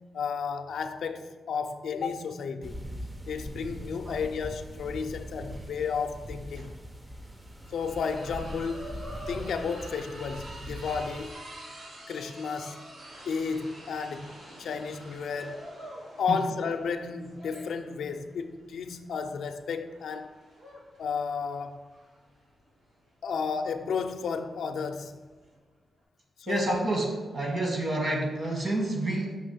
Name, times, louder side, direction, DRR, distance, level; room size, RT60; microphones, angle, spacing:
voice 1, 0.1-2.8 3.3-6.7 7.7-11.4 12.1-12.8 13.3-14.3 14.6-15.7 16.2-20.3 21.0-21.8 23.2-25.2 26.4-26.8, left 5 dB, 90° left, 0.4 m, -32 dB
sound 1, 2.6-11.3, equal, 10° right, 0.5 m, -42 dB
sound 2, 6.7-25.6, equal, 85° right, 1.7 m, -47 dB
voice 2, 26.5-27.1 27.3-29.4, right 2 dB, 45° right, 1.4 m, -28 dB
6.1 x 3.0 x 5.7 m
wide cardioid pair, 130°, 0 cm